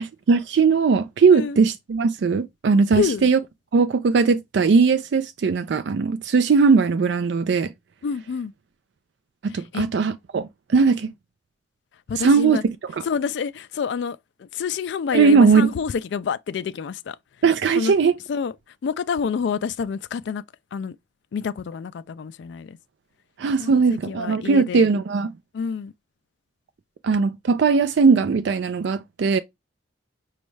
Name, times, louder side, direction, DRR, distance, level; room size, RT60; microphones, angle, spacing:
voice 1, 0.0-3.4 3.7-7.7 9.4-11.1 12.2-12.6 12.9-13.0 15.1-15.7 17.4-18.1 23.4-25.3 27.0-29.4, right 5 dB, 60° right, 0.3 m, -19 dB
voice 2, 2.9-3.3 8.0-8.5 9.5-9.9 12.1-12.6 13.0-17.2 17.8-17.9 18.3-18.5 18.8-20.4 20.7-21.0 21.3-22.8 23.6-24.9 25.5-25.9, left 6 dB, 65° left, 0.3 m, -28 dB
5.2 x 2.3 x 3.1 m
head